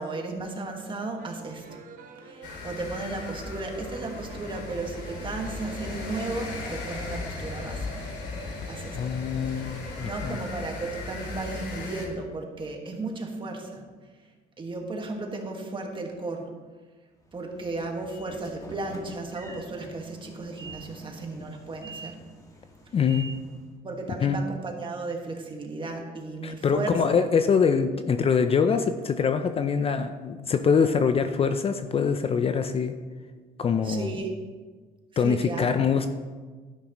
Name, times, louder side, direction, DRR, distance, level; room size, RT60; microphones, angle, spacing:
voice 1, 0.0-1.8 2.2-8.1 8.7-9.0 9.5-9.6 10.0-13.9 14.6-16.5 17.3-22.2 23.8-27.2 33.8-34.3 35.2-35.9, right 3 dB, 30° right, 1 dB, 1.7 m, -35 dB
sound 1, 1.2-6.4, right 4 dB, 50° right, 1.1 m, -48 dB
sound 2, 2.4-12.1, left 3 dB, 85° left, 2.5 m, -37 dB
voice 2, 8.9-10.4 22.9-23.3 24.2-24.4 26.4-32.9 33.6-34.1 35.2-36.1, left 6 dB, 35° left, 9 dB, 0.5 m, -24 dB
Train / Sliding door, 17.2-23.7, right 2 dB, 20° left, 1.6 m, -46 dB
11.5 x 10.0 x 3.1 m, 1.4 s
cardioid pair, 110°, 17 cm